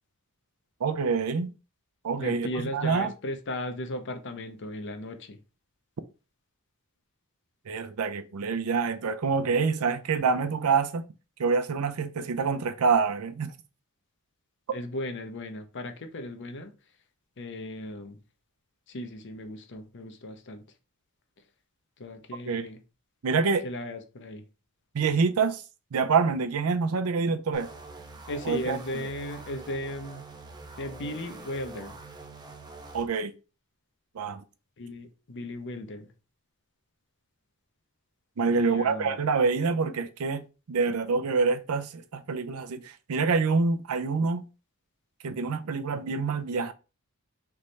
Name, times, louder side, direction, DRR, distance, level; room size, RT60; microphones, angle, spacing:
voice 1, 0.8-1.5 2.0-3.1 7.7-11.1 11.4-13.5 22.5-22.7 23.2-23.6 24.9-25.6 25.9-27.7 28.4-28.8 32.9-33.3 34.1-34.4 38.4-44.4 45.2-46.7, right 5 dB, 80° right, 0.5 m, -26 dB
voice 2, 2.2-5.4 14.7-16.7 17.4-18.2 18.9-20.6 22.0-22.8 23.6-24.4 28.3-30.3 30.8-32.0 34.8-36.1 38.5-39.2, left 1 dB, 55° left, 0.7 m, -36 dB
sound 1, 27.5-33.1, right 3 dB, 20° right, 0.5 m, -45 dB
3.4 x 3.2 x 4.0 m
head